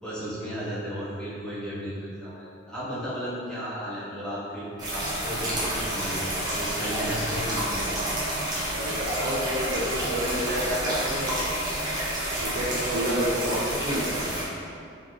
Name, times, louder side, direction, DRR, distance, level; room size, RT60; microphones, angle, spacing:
voice 1, 0.0-8.1 14.0-14.2, equal, 5° left, -12 dB, 0.9 m, -34 dB
sound 1, 4.8-14.4, right 1 dB, 20° right, 0.7 m, -29 dB
voice 2, 8.7-11.5 12.4-14.0, equal, 55° right, -7 dB, 0.5 m, -29 dB
3.7 x 2.4 x 2.9 m, 2.5 s
head